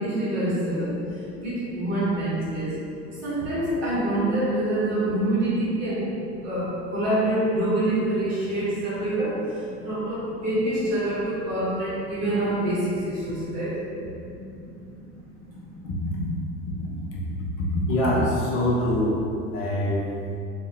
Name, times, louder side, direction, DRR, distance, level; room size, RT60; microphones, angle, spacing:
voice 1, 0.0-2.8 3.2-6.2 6.4-13.8, right 1 dB, 30° right, -10 dB, 1.2 m, -26 dB
voice 2, 17.9-19.2 19.5-20.2, left 1 dB, 25° left, -4 dB, 0.3 m, -24 dB
2.6 x 2.3 x 2.7 m, 2.6 s
figure-of-eight pair, 90°, 49 cm